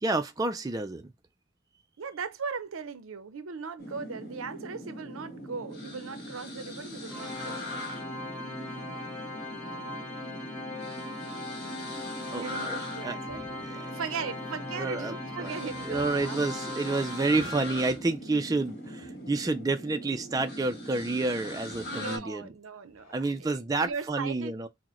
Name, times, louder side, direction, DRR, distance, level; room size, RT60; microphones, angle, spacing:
voice 1, 0.0-1.1 12.3-12.8 13.0-13.2 13.6-13.9 14.8-15.1 15.4-15.5 15.8-22.5 23.1-24.7, right 3 dB, 20° right, 0.3 m, -29 dB
voice 2, 2.0-7.6 12.3-13.4 13.9-16.4 21.8-23.1 23.8-24.5, right 5 dB, 85° right, 0.6 m, -38 dB
sound 1, 3.8-22.2, equal, 50° left, 1.4 m, -41 dB
Organ, 7.1-17.9, left 2 dB, 5° left, 1.1 m, -40 dB
sound 2, 13.2-20.3 20.6-22.2 22.7-23.3, left 2 dB, 30° left, 1.9 m, -58 dB
6.0 x 2.1 x 3.0 m
head